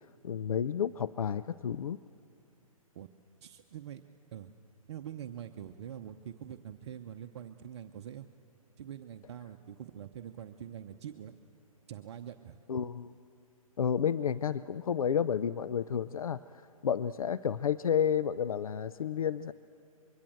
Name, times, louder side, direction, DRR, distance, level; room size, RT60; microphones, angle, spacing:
voice 1, 0.2-2.0 12.7-13.1 13.8-16.4 16.8-19.5, left 8 dB, 70° left, 15 dB, 0.5 m, -31 dB
voice 2, 3.4-4.0 4.3-4.5 4.9-8.3 8.8-11.3 11.9-12.6, right 10 dB, 50° right, 6 dB, 0.9 m, -44 dB
24.0 x 23.0 x 7.8 m, 2.5 s
figure-of-eight pair, 130°, 18 cm